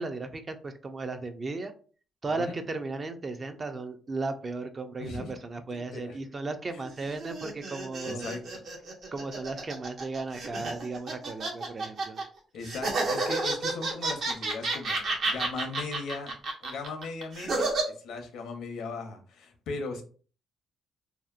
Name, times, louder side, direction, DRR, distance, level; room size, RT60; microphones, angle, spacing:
voice 1, 0.0-1.7 2.2-8.3 9.1-12.2, right 3 dB, 35° right, 8 dB, 0.4 m, -35 dB
voice 2, 5.0-5.3 5.7-6.2 6.7-6.8 8.0-8.4 12.5-16.4 16.6-20.0, left 3 dB, 80° left, 6 dB, 0.6 m, -38 dB
sound 1, 6.8-12.2 12.6-17.8, right 3 dB, 65° right, 0.7 m, -31 dB
2.7 x 2.1 x 2.4 m, 0.40 s
cardioid pair, 90°, 0 cm